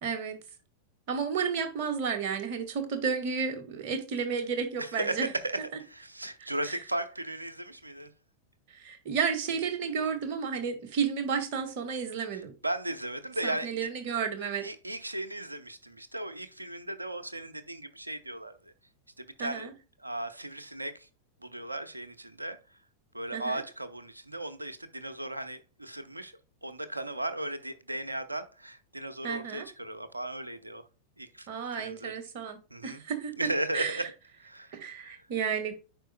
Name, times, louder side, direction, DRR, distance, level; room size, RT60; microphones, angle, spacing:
voice 1, 0.0-0.4 1.1-5.3 6.7-6.8 8.7-12.5 13.4-14.7 19.4-19.7 23.3-23.6 29.2-29.7 31.5-33.5 33.7-34.1 34.7-35.8, right 6 dB, 45° right, 1.6 m, -32 dB
voice 2, 4.8-8.1 12.3-13.7 14.6-18.6 19.2-19.7 20.0-21.1 21.4-22.6 23.1-26.3 26.6-30.8 31.2-31.5 31.8-32.1 32.7-33.0 33.4-34.1 34.4-34.7 35.0-35.2, right 1 dB, 85° right, 0.8 m, -36 dB
9.0 x 5.2 x 2.2 m
figure-of-eight pair, 90°, 0 cm